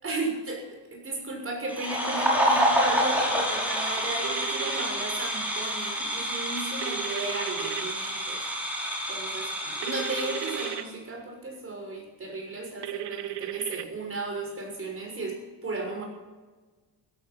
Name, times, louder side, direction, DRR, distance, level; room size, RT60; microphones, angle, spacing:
voice 1, 0.0-8.4 9.1-9.5 9.8-16.0, right 2 dB, 30° right, 1 dB, 6.4 m, -35 dB
sound 1, 1.7-10.8, equal, 5° right, 5.7 m, -28 dB
sound 2, 4.2-4.8 6.8-7.8 9.8-10.8 12.8-13.8, right 15 dB, 70° right, 1.1 m, -35 dB
15.5 x 14.5 x 6.0 m, 1.3 s
cardioid pair, 140°, 43 cm